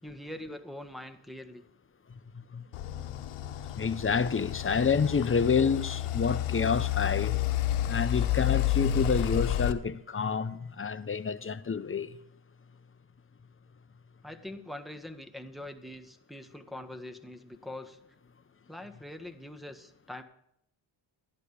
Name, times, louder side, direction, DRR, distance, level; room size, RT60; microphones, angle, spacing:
voice 1, 0.0-1.6 14.2-18.0 18.7-20.2, left 1 dB, ahead, 1.5 m, -43 dB
voice 2, 2.3-2.7 3.7-7.4 7.9-12.2, left 5 dB, 25° left, 0.8 m, -28 dB
sound 1, 2.7-9.7, left 12 dB, 90° left, 1.0 m, -30 dB
13.0 x 10.5 x 5.0 m
cardioid pair, 80°, 50 cm